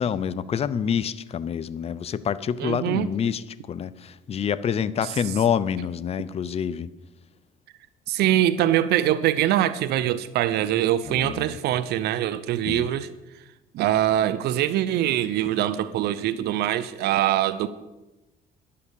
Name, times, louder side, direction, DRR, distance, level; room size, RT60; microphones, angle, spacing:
voice 1, 0.0-6.9 11.1-11.6 12.6-12.9, left 8 dB, 35° left, 0.6 m, -27 dB
voice 2, 2.6-3.1 8.1-13.1 13.7-17.7, right 12 dB, 75° right, 0.6 m, -23 dB
11.0 x 8.5 x 7.0 m
cardioid pair, 110°, 17 cm